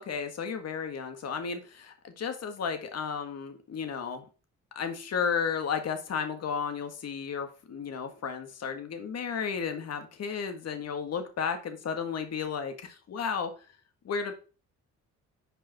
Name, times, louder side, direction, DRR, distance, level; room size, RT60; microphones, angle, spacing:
voice 1, 0.0-4.2 4.8-13.5 14.1-14.3, left 6 dB, 55° left, 7 dB, 1.7 m, -33 dB
5.4 x 5.2 x 5.8 m, 0.35 s
cardioid pair, 90°, 30 cm